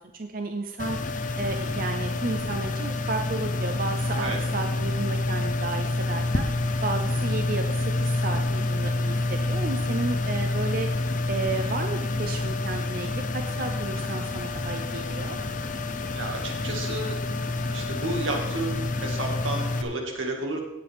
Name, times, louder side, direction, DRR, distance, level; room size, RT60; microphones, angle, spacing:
voice 1, 0.1-1.0 1.4-6.5 6.8-10.9 11.3-15.4, right 3 dB, 45° right, 5 dB, 0.6 m, -33 dB
sound 1, 0.8-19.8, left 2 dB, 40° left, 0.8 m, -28 dB
voice 2, 16.1-17.2 17.7-20.6, right 2 dB, 85° right, 1 dB, 2.1 m, -31 dB
17.0 x 7.6 x 3.6 m, 0.95 s
head